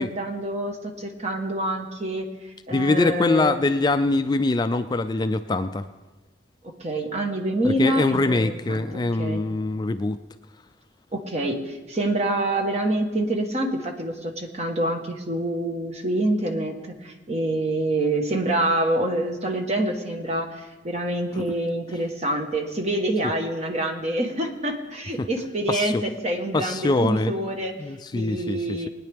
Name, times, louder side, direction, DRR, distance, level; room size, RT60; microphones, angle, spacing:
voice 1, 0.0-2.2 2.7-3.6 6.8-9.4 11.1-16.7 17.0-27.7 28.1-28.9, right 1 dB, 35° right, 4 dB, 1.3 m, -26 dB
voice 2, 2.7-5.8 7.6-10.2 21.3-21.5 21.9-22.0 25.2-25.3 25.7-25.9 26.5-27.3 27.8-28.9, left 2 dB, 25° left, 9 dB, 0.3 m, -23 dB
20.5 x 9.8 x 3.5 m, 1.2 s
head